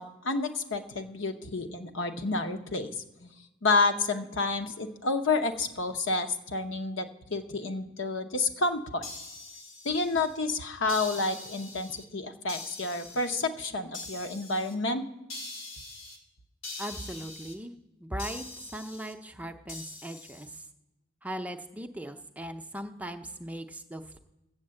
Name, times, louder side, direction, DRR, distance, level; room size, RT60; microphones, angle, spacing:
voice 1, 0.0-3.3 3.6-9.0 9.8-15.0, left 3 dB, 70° left, 6 dB, 0.8 m, -30 dB
sound 1, 9.0-10.4 10.9-12.0 12.5-13.5 13.9-14.7 15.3-16.2 16.6-17.5 18.2-19.1 19.7-20.5, left 2 dB, 85° left, 1.9 m, -43 dB
voice 2, 16.8-17.7 18.0-18.5 18.7-20.6 21.2-24.2, right 1 dB, 5° right, 6 dB, 0.5 m, -39 dB
8.7 x 7.8 x 7.6 m, 0.99 s
head